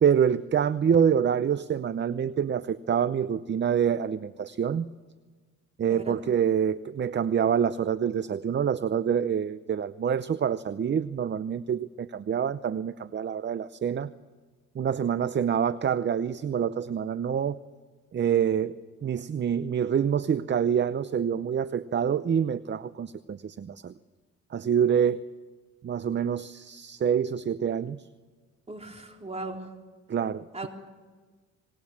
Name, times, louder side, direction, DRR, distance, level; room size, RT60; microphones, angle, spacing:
voice 1, 0.0-4.9 5.8-14.1 14.7-17.6 18.1-18.8 19.0-23.9 24.5-25.2 25.8-28.1 30.1-30.7, right 8 dB, 40° right, 15 dB, 0.7 m, -26 dB
voice 2, 5.9-6.2 28.7-29.7 30.5-30.7, right 2 dB, 20° right, 2 dB, 3.9 m, -38 dB
26.5 x 20.0 x 7.4 m, 1.4 s
cardioid pair, 90°, 30 cm